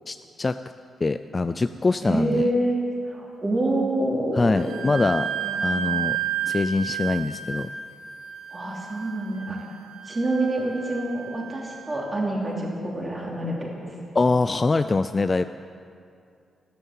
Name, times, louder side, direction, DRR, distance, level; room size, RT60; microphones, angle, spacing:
voice 1, 0.1-0.5 1.0-2.5 4.3-5.3 5.6-6.2 6.5-7.7 14.1-15.4, left 3 dB, 20° left, 11 dB, 0.3 m, -23 dB
voice 2, 2.0-4.9 5.4-5.7 8.5-9.6 10.0-13.9, right 1 dB, 20° right, -3 dB, 3.1 m, -27 dB
Wind instrument woodwind instrument, 4.6-12.0, right 8 dB, 75° right, 1.4 m, -32 dB
14.5 x 13.0 x 7.4 m, 2.4 s
wide cardioid pair, 165°, 0 cm